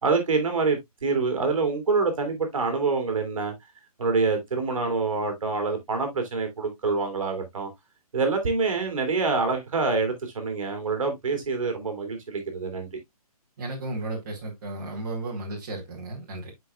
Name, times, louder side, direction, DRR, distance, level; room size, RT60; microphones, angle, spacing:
voice 1, 0.0-3.5 4.0-7.7 8.1-12.9, right 4 dB, 55° right, 2.4 m, -26 dB
voice 2, 13.6-16.5, right 2 dB, 30° right, 2.1 m, -34 dB
10.0 x 4.9 x 2.2 m
hypercardioid pair, 170°, 20 cm